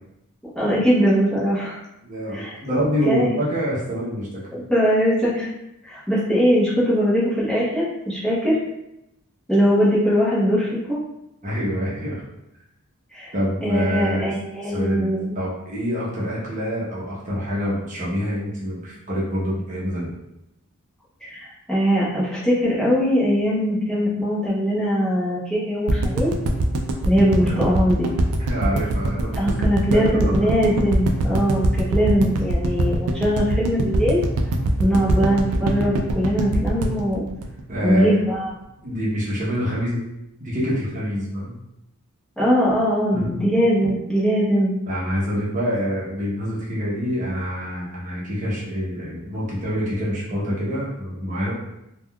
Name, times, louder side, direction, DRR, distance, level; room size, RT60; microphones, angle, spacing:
voice 1, 0.5-1.8 2.3-2.6 3.1-3.3 4.5-5.5 5.8-8.6 9.5-11.0 13.1-13.3 13.6-15.4 21.2-26.3 27.0-28.1 29.3-34.2 34.8-37.2 37.8-38.5 42.4-44.7, equal, 5° left, -9 dB, 0.7 m, -21 dB
voice 2, 2.0-4.6 11.4-12.2 13.3-14.3 14.6-20.1 27.5-27.6 28.4-30.1 30.4-30.5 37.7-38.2 38.8-40.0 40.4-41.5 43.1-43.4 44.9-51.5, equal, 35° right, -6 dB, 0.7 m, -26 dB
sound 1, 25.9-38.0 38.3-38.4 38.6-38.7, right 1 dB, 75° right, 0.4 m, -22 dB
3.5 x 2.2 x 2.2 m, 0.87 s
head